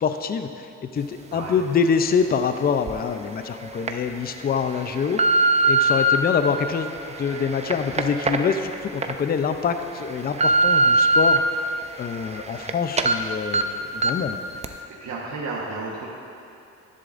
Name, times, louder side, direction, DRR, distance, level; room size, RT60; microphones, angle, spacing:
voice 1, 0.0-5.2 5.6-6.9 7.2-11.4 12.0-14.4, left 6 dB, 30° left, 8 dB, 0.5 m, -25 dB
sound 1, 2.9-3.0 3.6-3.9 4.5-6.2 6.8-9.1 9.5-9.6 10.1-11.4 11.8-12.7 13.0-13.1 13.5-13.6 14.0-14.3 14.6-14.7, right 2 dB, 20° right, 0.5 m, -21 dB
voice 2, 14.6-16.1, right 3 dB, 65° right, -5 dB, 1.3 m, -33 dB
11.0 x 10.5 x 2.5 m, 2.8 s
cardioid pair, 90°, 30 cm